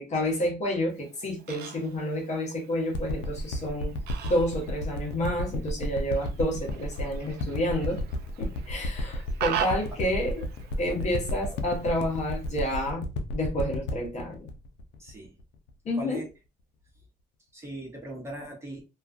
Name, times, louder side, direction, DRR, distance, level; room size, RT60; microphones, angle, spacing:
voice 1, 0.0-3.9 4.2-8.0 8.4-10.5 10.8-13.1 13.3-14.5 15.8-16.2, left 1 dB, 45° left, 0.9 m, -29 dB
Fowl, 0.9-12.9, right 9 dB, 70° right, 0.5 m, -41 dB
sound 1, 2.9-15.7 16.3-16.4, left 1 dB, 85° left, 0.5 m, -32 dB
voice 2, 15.0-15.3 16.0-16.3 17.5-18.8, right 1 dB, 15° right, 0.9 m, -40 dB
2.3 x 2.3 x 2.4 m
cardioid pair, 110°, 17 cm